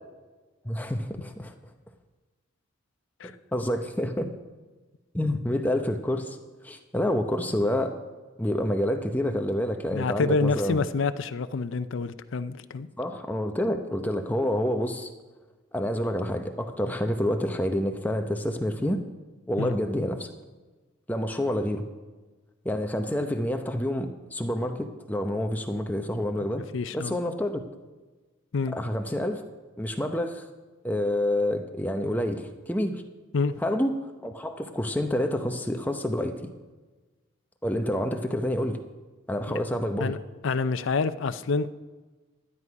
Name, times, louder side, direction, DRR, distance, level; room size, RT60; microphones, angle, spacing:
voice 1, 0.6-1.5 3.2-4.3 5.1-6.4 6.6-7.9 8.4-10.8 13.0-15.1 15.7-19.0 19.5-20.3 21.1-21.8 22.6-26.7 26.9-27.6 28.7-29.4 29.8-30.4 30.8-33.0 33.6-33.9 34.2-36.5 37.6-38.8 39.3-40.2, left 1 dB, 10° left, 5 dB, 0.7 m, -28 dB
voice 2, 9.9-12.9 19.6-19.8 26.7-27.2 28.5-28.8 33.3-33.5 39.5-39.6 40.0-40.2 40.4-41.7, left 4 dB, 70° left, 13 dB, 0.5 m, -27 dB
12.0 x 9.7 x 4.7 m, 1.3 s
head